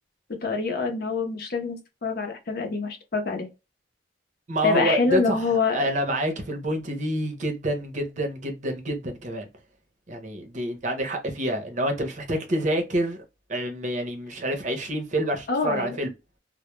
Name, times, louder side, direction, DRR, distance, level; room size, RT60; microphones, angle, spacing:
voice 1, 0.4-3.5 4.6-5.8 15.5-16.0, left 4 dB, 55° left, 0.6 m, -26 dB
voice 2, 4.5-5.4 5.7-9.5 10.1-13.2 13.5-16.1, right 1 dB, 40° right, 0.6 m, -27 dB
2.2 x 2.0 x 3.0 m
head